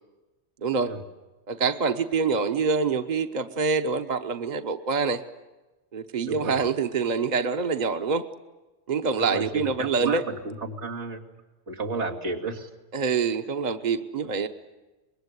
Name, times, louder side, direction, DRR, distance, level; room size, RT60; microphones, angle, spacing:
voice 1, 0.6-0.9 1.5-5.2 5.9-8.3 8.9-10.2 12.9-14.5, right 5 dB, 40° right, 8 dB, 1.1 m, -26 dB
voice 2, 6.3-6.7 9.2-11.2 11.7-12.7 14.2-14.3, right 3 dB, 90° right, -1 dB, 3.1 m, -32 dB
25.0 x 21.5 x 9.7 m, 1.2 s
omnidirectional pair, 1.1 m